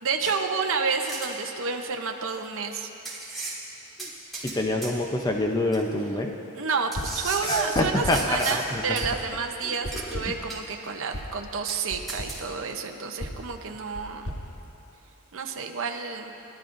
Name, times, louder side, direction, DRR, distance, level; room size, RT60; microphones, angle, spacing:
voice 1, 0.0-2.9 6.5-14.3 15.3-16.3, right 5 dB, 60° right, 3 dB, 0.7 m, -30 dB
sound 1, 1.0-1.3 2.4-2.5 3.0-3.6 4.0-4.6 4.8-4.9 5.7-5.8 6.9-8.6 9.0-9.1 9.9-10.2 10.5-10.9 11.2-11.3 11.7-11.8 12.1-12.4, right 3 dB, ahead, 2.6 m, -35 dB
voice 2, 4.4-6.3 7.4-8.4 8.7-8.8 10.3-10.4, left 1 dB, 15° left, 2 dB, 0.6 m, -26 dB
sound 2, 6.9-7.3 7.7-8.4 9.0-9.4 9.8-10.5 11.1-11.4 11.9-12.4 13.2-15.3, equal, 70° left, 1.9 m, -37 dB
22.0 x 12.0 x 2.6 m, 3.0 s
head